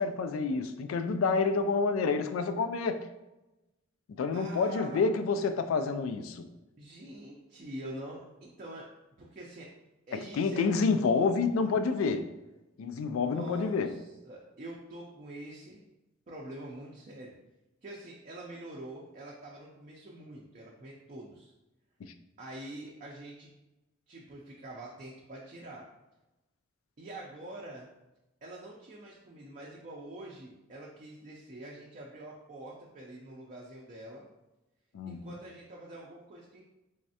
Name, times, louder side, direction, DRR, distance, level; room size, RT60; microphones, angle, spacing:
voice 1, 0.0-3.1 4.2-6.5 10.1-12.3 12.8-14.0 22.0-22.1 34.9-35.3, left 4 dB, 90° left, 0.3 m, -28 dB
voice 2, 4.3-5.0 6.8-8.9 9.2-9.7 10.1-10.8 11.1-11.8 13.2-15.8 16.3-17.4 17.8-21.5 22.4-23.5 24.1-25.9 27.0-27.9 28.4-34.2 35.1-36.6, right 1 dB, 40° right, 0.4 m, -45 dB
3.4 x 3.1 x 2.7 m
head